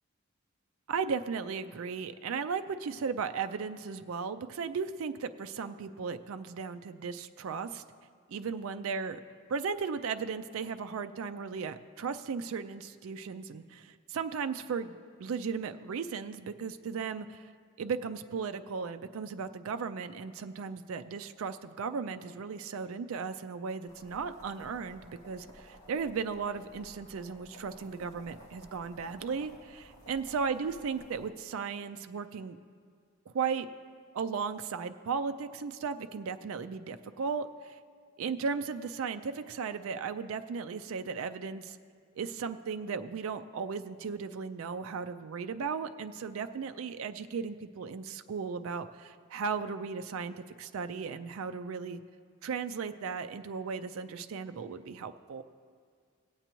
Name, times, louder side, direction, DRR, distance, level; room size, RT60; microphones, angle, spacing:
voice 1, 0.9-7.8 8.3-9.2 9.5-17.5 17.8-32.6 33.3-33.7 34.1-37.8 38.2-41.8 42.2-52.0 52.4-55.4, right 5 dB, 75° right, 9 dB, 0.4 m, -36 dB
sound 1, 23.9-31.3, equal, 35° left, 1.9 m, -54 dB
17.5 x 8.1 x 3.0 m, 2.1 s
head